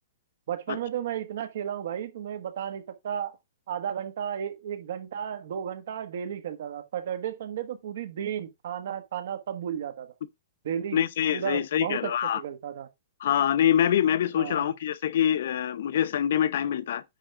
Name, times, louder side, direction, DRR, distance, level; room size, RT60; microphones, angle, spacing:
voice 1, 0.5-3.4 3.7-10.1 10.6-11.0 11.3-12.9 14.4-14.7, right 9 dB, 60° right, 1.3 m, -33 dB
voice 2, 10.9-12.4 13.2-17.0, left 10 dB, 60° left, 0.6 m, -25 dB
9.9 x 3.5 x 4.8 m
hypercardioid pair, 170°, 0 cm